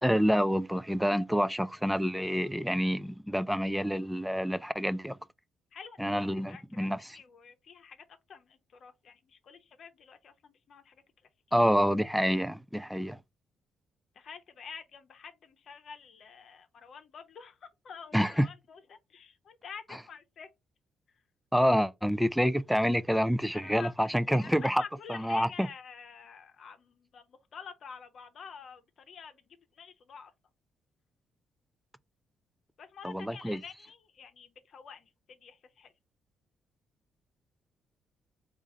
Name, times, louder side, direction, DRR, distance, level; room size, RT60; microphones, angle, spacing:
voice 1, 0.0-5.2 6.0-7.0 11.5-13.2 18.1-18.5 21.5-24.8 25.1-25.7 33.0-33.6, equal, ahead, 0.4 m, -27 dB
voice 2, 5.7-6.9 7.1-11.0 11.5-11.7 14.1-20.5 21.1-21.2 23.5-30.3 32.8-35.9, left 6 dB, 60° left, 0.8 m, -49 dB
3.6 x 2.5 x 4.0 m
cardioid pair, 90°, 0 cm